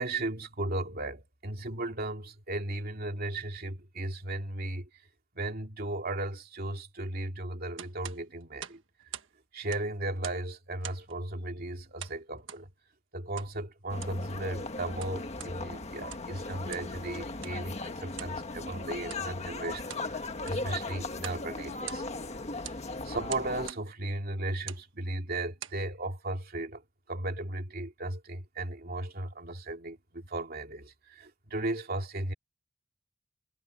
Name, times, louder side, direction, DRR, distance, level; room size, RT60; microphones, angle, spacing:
voice 1, 0.0-4.9 5.3-8.8 9.5-12.7 13.1-22.0 22.6-26.8 27.1-32.3, right 2 dB, 50° right, 2.6 m, -36 dB
sound 1, 7.8-9.3 9.6-10.5 10.8-11.2 12.0-12.6 13.4-13.5 13.9-14.2 14.8-15.5 16.0-16.3 16.7-16.9 17.4-17.6 18.1-18.4 19.0-19.3 19.7-20.1 20.4-20.7 21.2-21.4 21.7-22.3 22.6-22.8 23.3-23.8 24.5-24.9 25.4-25.8, right 10 dB, 70° right, 1.4 m, -44 dB
sound 2, 13.9-23.7, left 3 dB, 35° left, 1.5 m, -38 dB
head